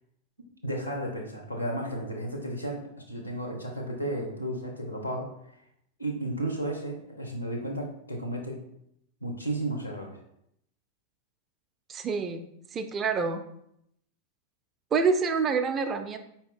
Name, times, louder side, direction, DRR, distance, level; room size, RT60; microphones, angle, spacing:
voice 1, 0.6-5.3 6.0-8.6 9.2-10.2, right 1 dB, 85° left, 2 dB, 0.9 m, -33 dB
voice 2, 11.9-12.4 12.7-13.4 14.9-16.2, right 5 dB, 25° right, 7 dB, 0.4 m, -27 dB
4.7 x 2.8 x 3.6 m, 0.76 s
figure-of-eight pair, 90°, 0 cm